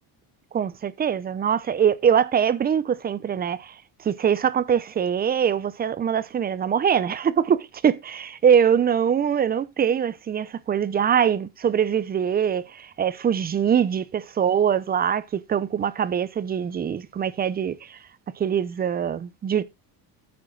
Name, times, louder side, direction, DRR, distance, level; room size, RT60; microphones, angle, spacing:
voice 1, 0.5-18.0 18.4-19.6, right 8 dB, 20° right, 0.6 m, -23 dB
9.7 x 7.5 x 3.8 m
cardioid pair, 155°, 43 cm